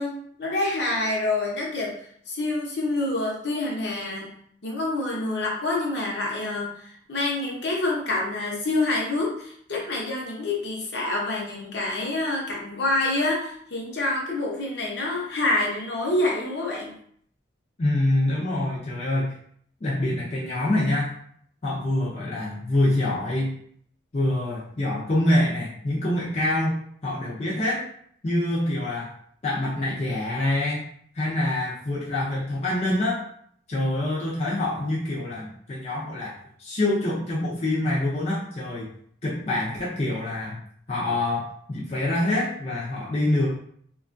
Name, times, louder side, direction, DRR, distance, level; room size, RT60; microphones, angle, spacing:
voice 1, 0.0-2.0 2.3-4.3 4.6-16.9, left 2 dB, 65° left, -2 dB, 0.8 m, -27 dB
voice 2, 17.8-19.3 19.8-21.1 21.6-23.5 24.1-26.8 27.0-27.9 28.2-29.1 29.4-30.8 31.1-33.2 33.7-36.3 36.6-38.9 39.2-40.6 40.9-43.5, left 1 dB, 35° left, -6 dB, 0.5 m, -25 dB
2.8 x 2.3 x 2.5 m, 0.63 s
head